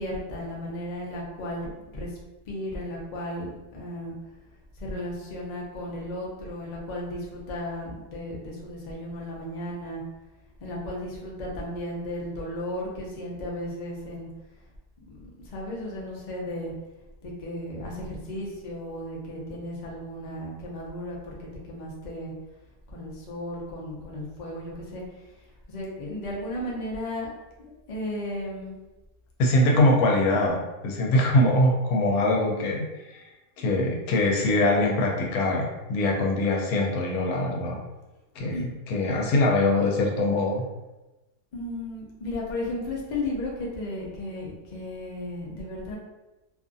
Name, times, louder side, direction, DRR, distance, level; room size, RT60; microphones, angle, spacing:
voice 1, 0.0-2.1 2.5-4.1 4.8-10.0 10.6-14.3 15.1-15.2 15.4-16.7 17.2-22.3 22.9-25.0 25.7-27.3 27.6-28.8 38.5-38.6 41.5-46.0, left 1 dB, 90° left, -3 dB, 0.3 m, -34 dB
voice 2, 29.4-33.2 33.6-37.8 38.4-38.6 38.9-40.6, left 1 dB, 75° left, -1 dB, 1.1 m, -23 dB
2.7 x 2.4 x 2.5 m, 1.1 s
omnidirectional pair, 1.7 m